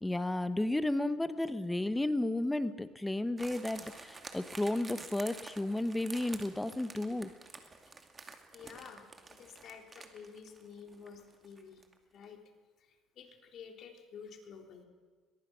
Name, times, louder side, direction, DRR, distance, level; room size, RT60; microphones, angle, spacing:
voice 1, 0.0-7.3, left 1 dB, 10° left, 13 dB, 0.9 m, -33 dB
sound 1, 3.4-12.0 12.2-12.3, right 3 dB, 20° right, 2.4 m, -50 dB
voice 2, 8.5-11.8 12.1-12.4 12.8-14.8, left 6 dB, 50° left, 4 dB, 3.6 m, -51 dB
22.5 x 22.0 x 6.2 m, 1.5 s
cardioid pair, 125°, 0 cm